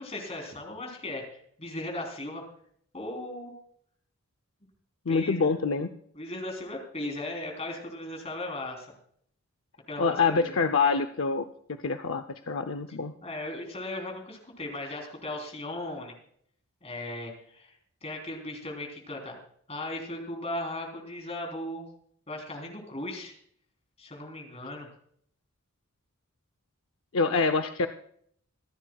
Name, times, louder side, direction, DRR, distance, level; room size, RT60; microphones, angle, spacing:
voice 1, 0.0-2.5 2.9-3.5 5.1-5.5 6.2-8.9 9.9-10.6 13.2-16.2 16.8-17.7 18.0-19.4 19.7-21.9 22.3-23.3 24.0-24.9, left 1 dB, 30° left, 1 dB, 3.6 m, -37 dB
voice 2, 5.1-5.9 10.0-13.1 27.1-27.9, left 4 dB, 65° left, 7 dB, 0.6 m, -26 dB
26.0 x 10.5 x 2.4 m, 0.63 s
head